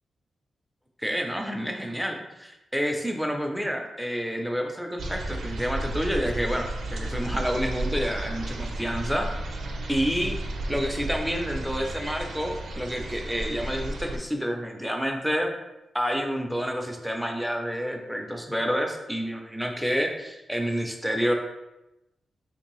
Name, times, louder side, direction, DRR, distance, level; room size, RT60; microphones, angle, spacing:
voice 1, 1.0-9.3 9.9-10.3 10.7-15.5 15.9-21.3, equal, ahead, 2 dB, 0.4 m, -29 dB
sound 1, 5.0-14.2, right 1 dB, 65° right, 0.5 m, -33 dB
3.2 x 2.6 x 3.0 m, 0.94 s
wide cardioid pair, 160°, 0 cm